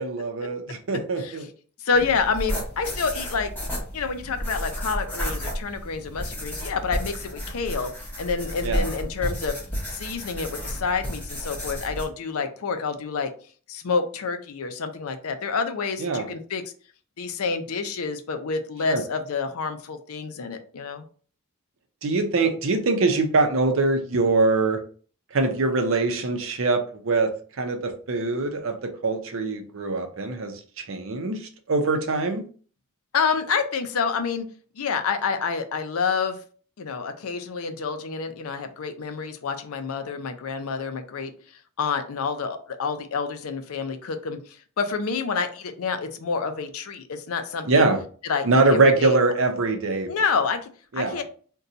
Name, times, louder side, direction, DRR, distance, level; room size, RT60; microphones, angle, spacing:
voice 1, 0.0-1.4 8.6-8.9 16.0-16.3 18.9-19.0 22.0-24.8 25.3-32.4 47.6-48.0 48.4-50.1 50.9-51.2, right 3 dB, 60° right, 5 dB, 0.6 m, -23 dB
voice 2, 1.8-3.5 3.9-7.9 8.2-9.6 9.9-13.3 13.7-16.6 17.2-21.0 33.1-34.5 34.8-36.4 36.8-41.3 41.8-47.9 48.2-49.2 50.1-51.2, left 5 dB, 75° left, 8 dB, 0.5 m, -28 dB
sound 1, 1.9-12.1, equal, 10° left, 0.9 m, -32 dB
2.7 x 2.2 x 3.8 m, 0.42 s
head